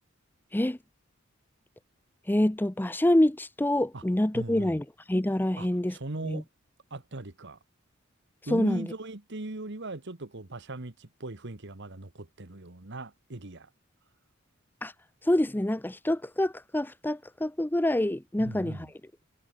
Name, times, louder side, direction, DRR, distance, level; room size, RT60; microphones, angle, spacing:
voice 1, 2.3-6.0 6.2-6.4 8.5-8.9 14.8-14.9 15.2-18.9, left 1 dB, 10° left, 0.6 m, -26 dB
voice 2, 4.3-4.7 5.6-6.5 6.9-7.6 8.5-13.7 18.4-18.9, right 2 dB, 60° right, 1.7 m, -39 dB
head